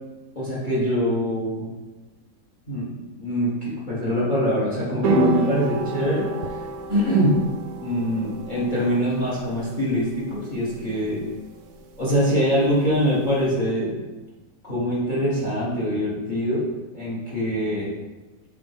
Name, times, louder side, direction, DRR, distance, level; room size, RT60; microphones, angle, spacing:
voice 1, 0.3-1.7 2.7-6.6 6.9-7.4 7.8-11.2 12.0-14.0 14.7-16.6 16.9-17.9, equal, 30° left, -7 dB, 1.6 m, -23 dB
sound 1, 5.0-13.5, right 2 dB, 75° right, 1.2 m, -31 dB
7.1 x 3.9 x 3.5 m, 1.1 s
omnidirectional pair, 1.9 m